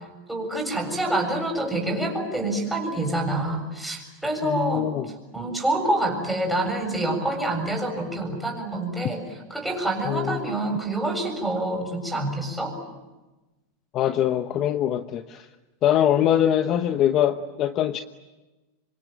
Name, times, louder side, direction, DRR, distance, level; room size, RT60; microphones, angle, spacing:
voice 1, 0.0-4.9 5.3-12.7, right 1 dB, ahead, 1 dB, 7.3 m, -27 dB
voice 2, 4.4-5.1 10.0-10.4 13.9-15.5 15.8-18.0, left 11 dB, 35° left, 9 dB, 1.0 m, -23 dB
26.0 x 25.5 x 9.1 m, 1.1 s
supercardioid pair, 140°, 0 cm